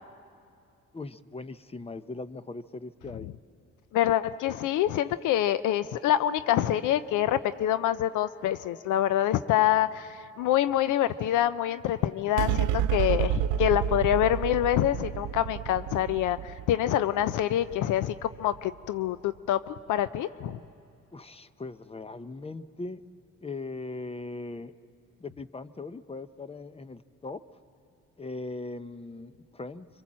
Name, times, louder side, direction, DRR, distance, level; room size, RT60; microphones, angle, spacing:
voice 1, 0.9-3.3 21.1-23.0 23.4-24.7 25.2-27.4 28.2-29.9, left 3 dB, 20° left, 13 dB, 0.7 m, -39 dB
voice 2, 3.9-20.6, left 12 dB, 85° left, 14 dB, 0.6 m, -26 dB
sound 1, 12.4-19.1, right 10 dB, 90° right, 0.5 m, -30 dB
26.0 x 24.5 x 7.4 m, 2.5 s
cardioid pair, 90°, 30 cm